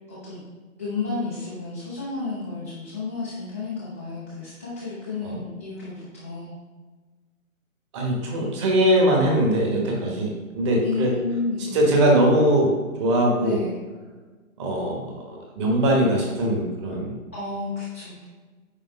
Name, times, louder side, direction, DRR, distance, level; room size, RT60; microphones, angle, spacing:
voice 1, 0.1-0.4 0.8-6.5 10.8-11.8 13.4-13.8 17.3-18.2, left 4 dB, 10° left, -10 dB, 0.5 m, -31 dB
voice 2, 7.9-11.1 11.7-13.6 14.6-17.1, right 1 dB, 20° right, 0 dB, 1.2 m, -21 dB
8.7 x 3.1 x 5.0 m, 1.3 s
figure-of-eight pair, 145°, 42 cm